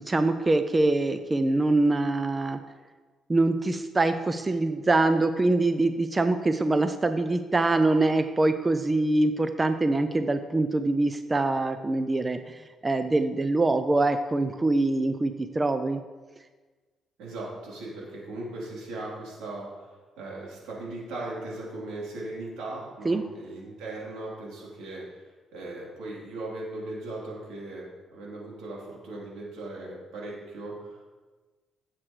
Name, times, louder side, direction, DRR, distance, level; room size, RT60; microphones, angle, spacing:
voice 1, 0.0-2.6 3.3-16.0 23.0-23.2, right 2 dB, 25° right, 9 dB, 0.6 m, -24 dB
voice 2, 17.2-31.1, right 2 dB, 85° right, -5 dB, 3.5 m, -38 dB
14.5 x 7.5 x 3.3 m, 1.3 s
cardioid pair, 90°, 0 cm